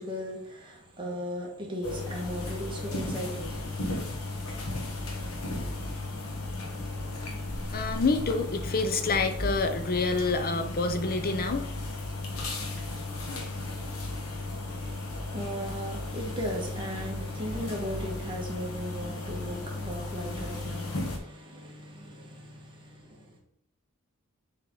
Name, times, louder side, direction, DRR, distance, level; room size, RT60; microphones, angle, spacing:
voice 1, 0.0-3.9 14.8-23.4, equal, 20° right, 1.6 m, -37 dB
sound 1, 1.8-21.2, left 2 dB, 75° left, 1.4 m, -35 dB
voice 2, 7.7-11.7, left 3 dB, 45° left, 0.7 m, -27 dB
7.2 x 4.2 x 3.9 m
head